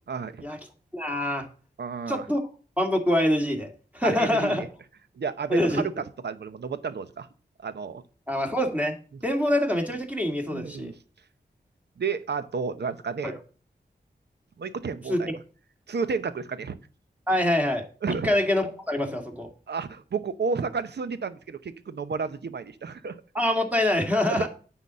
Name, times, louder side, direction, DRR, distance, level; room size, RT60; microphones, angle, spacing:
voice 1, 0.1-0.4 1.8-2.3 4.0-4.7 5.2-7.3 7.6-8.0 9.1-9.2 10.5-11.0 12.0-13.3 14.6-15.4 15.9-16.8 18.0-18.3 19.7-23.2 24.3-24.5, right 5 dB, 80° right, 13 dB, 0.8 m, -31 dB
voice 2, 0.9-1.5 2.1-2.4 2.8-4.7 5.5-5.8 8.3-8.9 9.2-10.9 13.2-13.3 15.1-15.2 17.3-17.8 18.2-19.5 23.3-24.5, left 1 dB, 10° right, 3 dB, 2.1 m, -25 dB
9.4 x 4.1 x 7.4 m, 0.40 s
wide cardioid pair, 80°, 17 cm